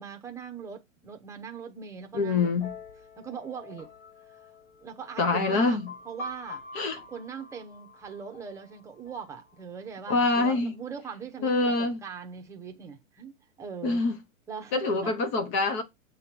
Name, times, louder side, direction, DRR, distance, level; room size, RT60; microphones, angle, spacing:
voice 1, 0.0-2.7 3.2-3.9 4.2-4.5 4.8-6.6 7.1-14.0 14.5-15.1, right 6 dB, 5° right, 0.8 m, -41 dB
voice 2, 2.1-2.7 5.2-5.9 6.7-7.0 10.1-10.7 11.4-12.0 13.8-14.1 14.7-15.8, left 3 dB, 10° left, 0.4 m, -25 dB
sound 1, 2.6-10.2, left 2 dB, 50° left, 4.4 m, -46 dB
7.6 x 3.8 x 5.9 m
hypercardioid pair, 145°, 41 cm